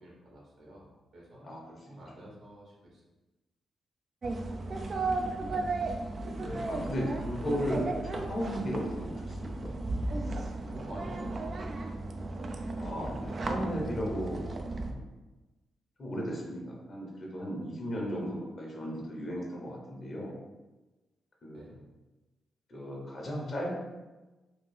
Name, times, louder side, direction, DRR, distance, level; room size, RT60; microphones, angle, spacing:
voice 1, 0.0-1.5 1.8-3.0 10.7-11.9 17.9-18.2 21.5-21.8, equal, 65° right, -4 dB, 1.2 m, -49 dB
voice 2, 1.4-1.9 6.2-9.7 12.8-14.4 14.8-15.0 16.0-20.3 21.4-21.7 22.7-23.8, equal, 50° left, -2 dB, 1.1 m, -36 dB
sound 1, 4.2-14.9, right 2 dB, 50° right, 0.4 m, -35 dB
3.3 x 2.4 x 3.4 m, 1.1 s
hypercardioid pair, 45°, 0 cm